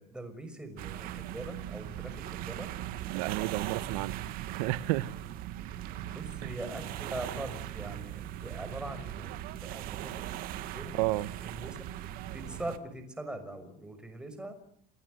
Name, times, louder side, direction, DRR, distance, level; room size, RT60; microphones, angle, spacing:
voice 1, 0.0-2.7 5.9-9.3 9.6-11.0 11.4-11.8 12.3-14.5, right 1 dB, 5° right, 6.0 m, -42 dB
sound 1, 0.8-12.8, right 13 dB, 50° right, 2.4 m, -39 dB
voice 2, 3.1-4.2 4.5-5.1 10.9-11.3, right 18 dB, 75° right, 1.4 m, -31 dB
28.5 x 23.5 x 8.0 m
cardioid pair, 160°, 19 cm